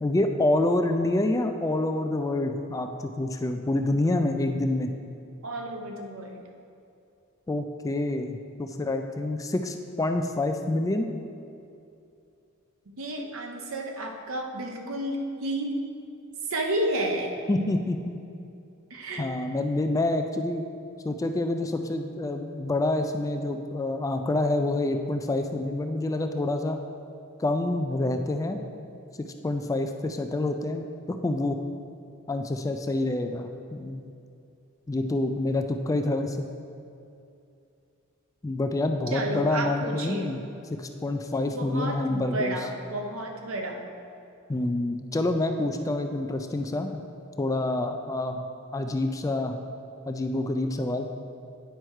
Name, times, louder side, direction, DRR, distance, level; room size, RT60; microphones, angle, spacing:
voice 1, 0.0-4.9 7.5-11.1 17.5-18.2 19.2-20.6 21.0-26.8 27.4-28.6 29.4-31.6 32.3-34.1 34.9-36.5 38.4-40.4 40.8-42.5 44.5-47.0 47.4-48.4 48.7-49.7 50.1-51.1, left 2 dB, 15° left, 6 dB, 0.3 m, -27 dB
voice 2, 5.4-6.5 13.0-15.8 16.5-17.3 18.9-19.3 39.1-40.3 41.5-43.9, right 1 dB, 75° right, 2 dB, 0.9 m, -31 dB
9.3 x 4.4 x 4.7 m, 2.6 s
head